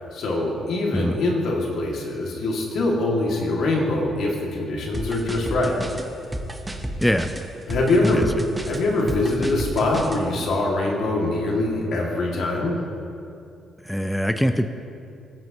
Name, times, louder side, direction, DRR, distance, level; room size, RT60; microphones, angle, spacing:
voice 1, 0.1-5.7 7.7-8.3 8.7-12.8, left 2 dB, 70° left, -2 dB, 2.2 m, -23 dB
sound 1, 4.9-10.2, right 1 dB, 15° right, 1.0 m, -32 dB
voice 2, 13.8-14.7, equal, 5° left, 7 dB, 0.5 m, -22 dB
18.5 x 7.6 x 3.0 m, 2.6 s
cardioid pair, 90°, 0 cm